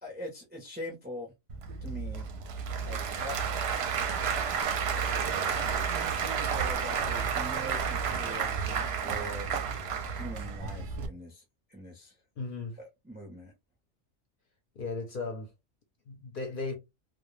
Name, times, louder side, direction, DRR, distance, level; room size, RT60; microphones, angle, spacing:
voice 1, 0.0-1.3 1.8-2.3 2.8-3.6 5.9-9.5 10.1-11.4 11.7-12.1 12.8-13.5, equal, 15° right, 0.3 m, -42 dB
Applause / Crowd, 1.5-11.1, right 6 dB, 65° right, 0.7 m, -31 dB
voice 2, 12.4-12.8 14.8-15.5 16.1-16.7, left 3 dB, 55° left, 0.6 m, -36 dB
2.2 x 2.1 x 2.9 m
omnidirectional pair, 1.3 m